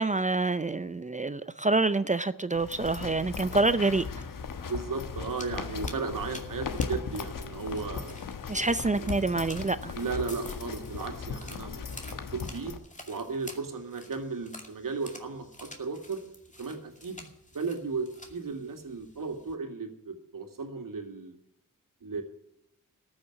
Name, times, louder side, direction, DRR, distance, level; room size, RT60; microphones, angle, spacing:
voice 1, 0.0-4.0 8.5-9.9, right 3 dB, 20° right, 0.6 m, -27 dB
sound 1, 2.5-12.8, left 5 dB, 75° left, 1.2 m, -37 dB
sound 2, 4.4-19.5, left 1 dB, 20° left, 2.4 m, -50 dB
voice 2, 4.6-8.2 8.5-8.7 8.9-9.1 10.0-12.7 13.1-16.2 16.6-17.3 17.5-21.4 22.0-22.2, right 4 dB, 75° right, 2.2 m, -35 dB
13.5 x 6.5 x 9.9 m
cardioid pair, 55°, 34 cm